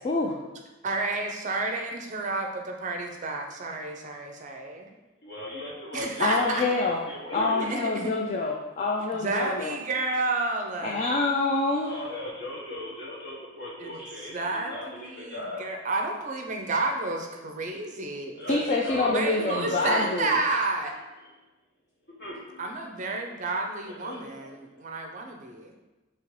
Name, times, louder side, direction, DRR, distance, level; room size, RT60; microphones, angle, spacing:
voice 1, 0.0-0.3 6.2-7.0 7.3-9.8 10.8-11.9 18.5-20.4, left 3 dB, 35° left, -1 dB, 0.3 m, -26 dB
voice 2, 0.8-4.9 5.9-6.6 7.7-8.1 9.1-11.1 13.8-13.9 14.3-18.4 19.0-20.9 22.6-25.7, right 3 dB, 40° right, 2 dB, 0.5 m, -31 dB
voice 3, 5.2-8.0 11.8-15.6 18.4-20.2 22.2-22.8 23.2-23.3 24.0-24.9, left 1 dB, 55° left, -4 dB, 1.2 m, -38 dB
5.1 x 2.8 x 3.1 m, 1.1 s
head